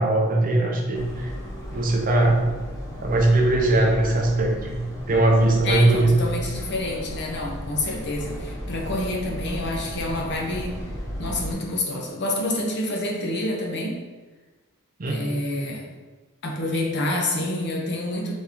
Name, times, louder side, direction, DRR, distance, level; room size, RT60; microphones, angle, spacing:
voice 1, 0.0-1.3 1.7-2.4 3.0-4.8 5.1-6.3 15.0-15.3, right 2 dB, 40° right, 1 dB, 0.6 m, -20 dB
sound 1, 0.9-11.5, equal, 15° left, 0.9 m, -35 dB
voice 2, 5.6-10.8 11.2-14.0 15.1-15.9 16.4-18.3, left 1 dB, 50° left, -1 dB, 0.8 m, -28 dB
4.1 x 3.5 x 3.7 m, 1.3 s
head